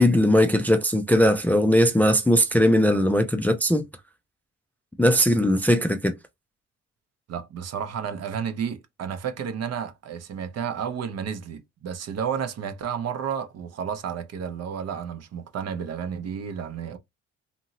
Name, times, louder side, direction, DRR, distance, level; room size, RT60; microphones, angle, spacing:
voice 1, 0.0-3.8 5.0-6.2, equal, 5° left, 0.3 m, -19 dB
voice 2, 7.3-17.0, right 7 dB, 55° right, 0.6 m, -31 dB
2.7 x 2.6 x 2.8 m
cardioid pair, 90°, 30 cm